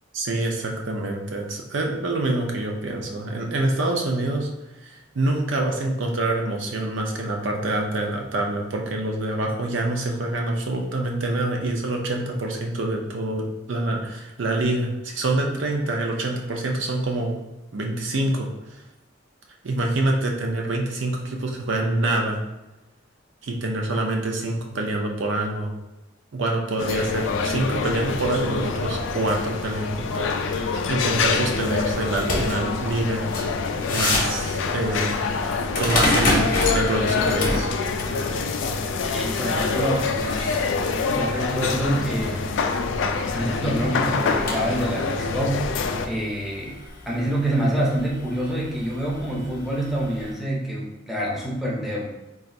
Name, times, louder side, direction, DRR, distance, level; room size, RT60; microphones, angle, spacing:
voice 1, 0.1-4.5 4.8-17.4 17.7-18.5 19.6-22.4 23.4-25.7 26.3-33.2 33.9-35.2 35.8-37.7, right 2 dB, 70° right, 1 dB, 0.5 m, -26 dB
sound 1, 26.8-46.1, left 4 dB, 70° left, 0.3 m, -26 dB
sound 2, 31.9-50.3, left 2 dB, 45° left, 0.7 m, -31 dB
voice 2, 39.1-40.1 41.1-42.5 43.3-45.7 46.0-46.7 47.1-52.1, right 1 dB, ahead, -5 dB, 0.6 m, -26 dB
2.5 x 2.4 x 4.0 m, 0.97 s
head